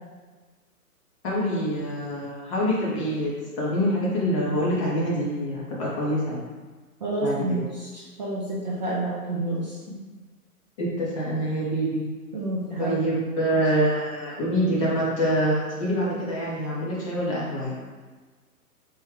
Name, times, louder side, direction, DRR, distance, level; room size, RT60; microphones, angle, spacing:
voice 1, 1.2-3.3 3.6-6.4 7.2-7.4 10.8-12.0 12.8-17.8, equal, 25° left, -6 dB, 0.5 m, -25 dB
voice 2, 7.0-9.8 12.3-13.0, right 2 dB, 35° right, -7 dB, 0.4 m, -29 dB
3.5 x 2.1 x 3.0 m, 1.4 s
hypercardioid pair, 130°, 45 cm